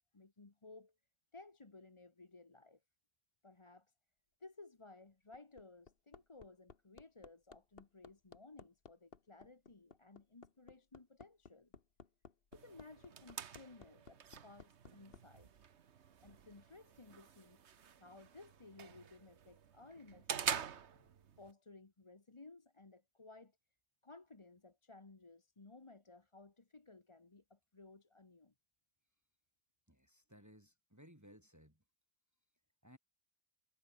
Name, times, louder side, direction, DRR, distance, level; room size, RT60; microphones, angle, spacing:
voice 1, 0.1-0.9 1.3-2.8 3.4-3.9 4.4-11.7 12.5-15.6 16.2-21.1 21.4-23.6 24.0-28.5, left 3 dB, 30° left, 1.3 m, -58 dB
Hammer, 5.1-15.2 16.6-16.7, left 5 dB, 60° left, 1.7 m, -58 dB
sound 1, 12.5-21.5, right 8 dB, 80° right, 1.4 m, -46 dB
voice 2, 29.9-31.8 32.8-33.0, equal, 15° right, 4.5 m, -61 dB
omnidirectional pair, 1.1 m